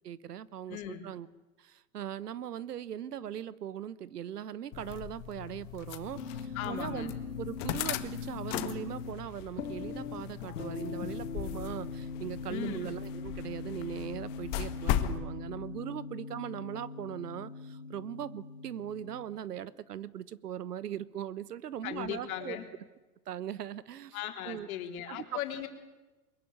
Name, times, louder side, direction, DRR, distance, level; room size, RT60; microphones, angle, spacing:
voice 1, 0.0-1.3 1.6-7.1 7.4-22.6 23.3-24.2 24.5-24.7 25.1-25.4, right 10 dB, 85° right, 19 dB, 1.2 m, -40 dB
voice 2, 0.7-1.0 6.5-7.1 12.5-12.8 15.8-15.9 21.8-22.7 24.1-25.7, left 11 dB, 65° left, 5 dB, 3.9 m, -38 dB
sound 1, 4.7-15.2, left 12 dB, 45° left, 1.8 m, -38 dB
sound 2, 6.1-19.2, left 4 dB, 90° left, 2.7 m, -41 dB
23.0 x 22.0 x 9.5 m, 1.2 s
hypercardioid pair, 110°, 46 cm